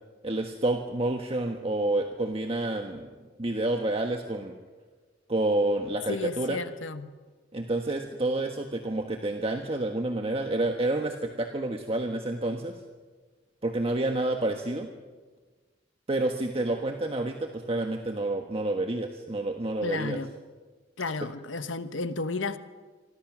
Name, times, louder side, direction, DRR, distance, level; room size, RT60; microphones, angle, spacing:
voice 1, 0.2-3.1 3.4-4.5 5.3-6.6 7.5-12.8 13.6-14.9 16.1-20.2, right 2 dB, 30° right, 4 dB, 1.4 m, -29 dB
voice 2, 6.1-7.1 19.8-20.3 21.0-22.6, left 3 dB, 80° left, 10 dB, 1.3 m, -32 dB
27.0 x 24.5 x 6.2 m, 1.4 s
head